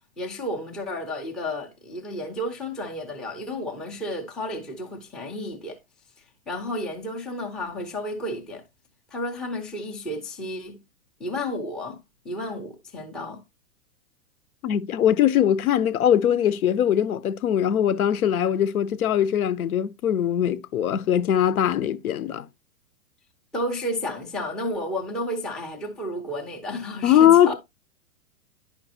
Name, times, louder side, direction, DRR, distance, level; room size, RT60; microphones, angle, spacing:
voice 1, 0.2-5.8 6.5-8.6 9.1-10.8 11.2-12.0 12.2-13.4 23.5-27.5, left 1 dB, ahead, 0.5 m, -32 dB
voice 2, 14.6-22.5 27.0-27.5, left 10 dB, 80° left, 0.8 m, -21 dB
10.5 x 5.1 x 2.7 m
hypercardioid pair, 140°, 43 cm